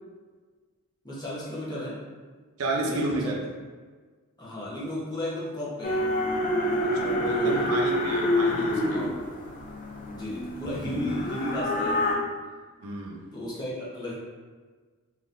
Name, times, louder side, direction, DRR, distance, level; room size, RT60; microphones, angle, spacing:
voice 1, 1.0-2.0 2.8-3.3 4.4-6.1 7.3-7.7 8.8-9.2 10.1-12.2 13.3-14.1, equal, 20° left, -7 dB, 0.8 m, -34 dB
voice 2, 2.6-3.3 6.8-9.1 12.8-13.2, right 2 dB, 70° right, -1 dB, 0.6 m, -31 dB
sound 1, 5.8-12.1, left 1 dB, 35° left, 0.5 m, -27 dB
3.7 x 2.8 x 2.5 m, 1.5 s
head